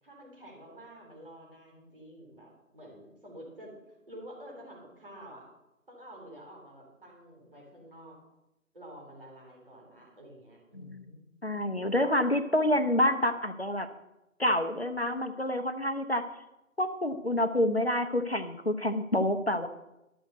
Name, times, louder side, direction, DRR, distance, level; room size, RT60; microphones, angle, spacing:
voice 1, 0.0-3.7 4.1-5.5 5.9-8.2 8.7-11.2, equal, 40° right, -2 dB, 3.7 m, -49 dB
voice 2, 11.4-13.9 14.4-16.2 16.8-19.7, left 1 dB, 50° left, 7 dB, 0.6 m, -28 dB
12.0 x 6.6 x 6.5 m, 0.93 s
figure-of-eight pair, 170°, 41 cm